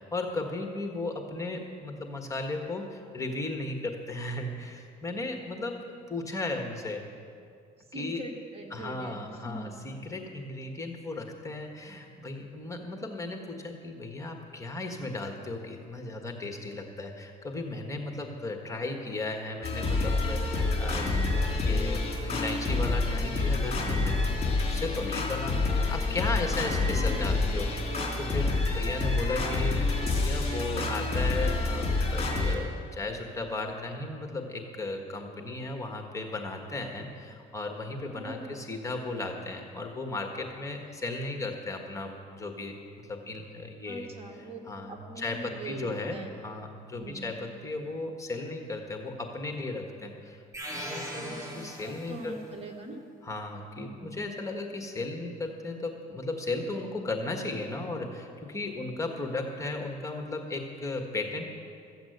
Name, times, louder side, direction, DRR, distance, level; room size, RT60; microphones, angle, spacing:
voice 1, 0.0-5.7 6.1-7.0 7.9-8.2 8.7-25.5 25.9-44.1 44.7-50.4 50.8-52.4 53.2-61.4, left 2 dB, 20° left, 3 dB, 1.4 m, -35 dB
voice 2, 7.9-9.7 26.2-27.1 38.1-38.6 43.9-46.3 47.0-47.3 51.2-53.0 53.8-54.2, right 1 dB, 35° right, 2 dB, 1.8 m, -42 dB
sound 1, 19.6-32.6, left 3 dB, 35° left, 3.0 m, -28 dB
sound 2, 50.5-52.4, equal, 15° right, 3.0 m, -39 dB
14.5 x 8.0 x 8.0 m, 2.3 s
cardioid pair, 110°, 17 cm